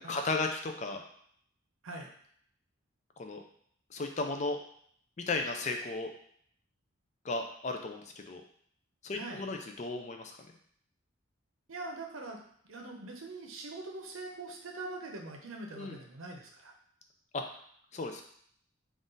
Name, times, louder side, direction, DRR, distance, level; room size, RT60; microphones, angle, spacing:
voice 1, 0.1-1.0 3.2-3.4 3.9-4.6 5.2-6.1 7.2-8.4 9.0-10.4 15.7-16.0 17.3-17.4 17.9-18.2, left 3 dB, 35° left, 4 dB, 0.4 m, -35 dB
voice 2, 9.1-9.4 11.7-12.4 12.7-16.7, right 2 dB, 80° right, 2 dB, 0.7 m, -43 dB
3.9 x 2.5 x 3.8 m, 0.63 s
head